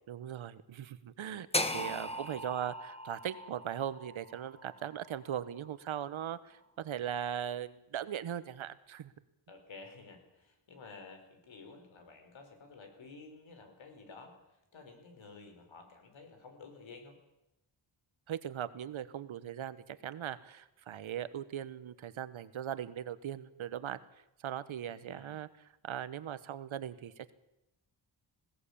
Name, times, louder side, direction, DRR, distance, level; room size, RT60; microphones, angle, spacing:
voice 1, 0.1-1.5 1.7-9.1 18.3-24.0 24.4-25.5 25.8-27.3, right 10 dB, 80° right, 15 dB, 1.3 m, -39 dB
voice 2, 1.5-2.4 9.5-17.2 24.9-25.4, left 4 dB, 70° left, 6 dB, 4.9 m, -52 dB
sound 1, 1.5-5.7, left 1 dB, 15° left, 1.4 m, -38 dB
20.5 x 17.5 x 8.6 m, 0.91 s
wide cardioid pair, 155°, 47 cm